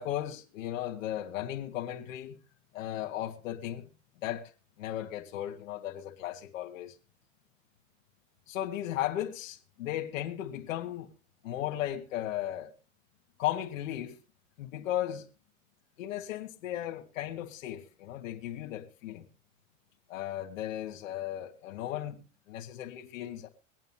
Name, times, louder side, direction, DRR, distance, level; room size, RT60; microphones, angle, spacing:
voice 1, 0.0-2.4 2.7-3.9 4.2-4.5 4.8-7.0 8.5-11.1 11.4-12.7 13.4-14.2 14.6-15.3 16.0-19.2 20.1-23.5, left 12 dB, 80° left, 1.9 m, -36 dB
24.0 x 9.2 x 2.8 m
supercardioid pair, 165°, 38 cm